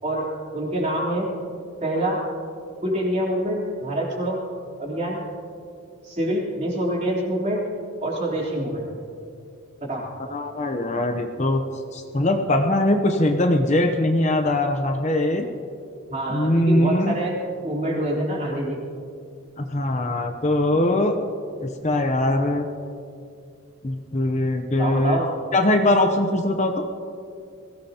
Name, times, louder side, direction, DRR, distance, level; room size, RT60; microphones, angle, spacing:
voice 1, 0.5-1.3 1.8-2.2 2.8-4.4 4.8-5.2 6.0-7.6 8.0-8.9 9.9-10.1 16.1-17.4 17.6-18.8 24.8-25.3, right 1 dB, 30° right, -4 dB, 3.5 m, -25 dB
voice 2, 10.3-11.6 11.9-15.5 16.3-17.1 19.6-21.2 21.6-22.7 23.8-25.2 25.5-26.8, left 1 dB, 35° left, 5 dB, 0.7 m, -21 dB
22.0 x 16.5 x 2.9 m, 2.4 s
head